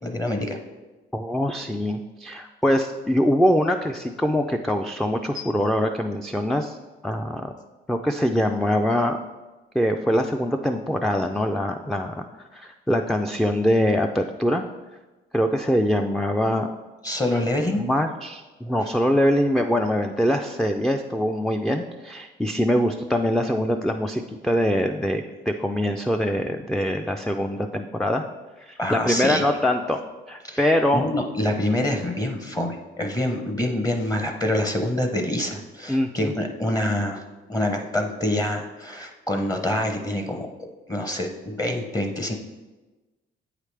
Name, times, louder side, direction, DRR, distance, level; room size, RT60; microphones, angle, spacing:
voice 1, 0.0-0.6 17.0-17.8 18.7-18.8 28.8-29.4 30.4-30.6 30.9-37.2 37.5-40.5 40.9-42.3, left 1 dB, 20° left, 4 dB, 0.7 m, -26 dB
voice 2, 1.1-6.8 7.0-7.5 7.9-9.2 9.7-12.2 12.5-14.7 15.3-16.7 17.8-28.2 28.6-30.0 30.3-31.1 35.9-36.3, equal, ahead, 4 dB, 0.3 m, -23 dB
8.2 x 4.9 x 3.3 m, 1.2 s
cardioid pair, 90°, 20 cm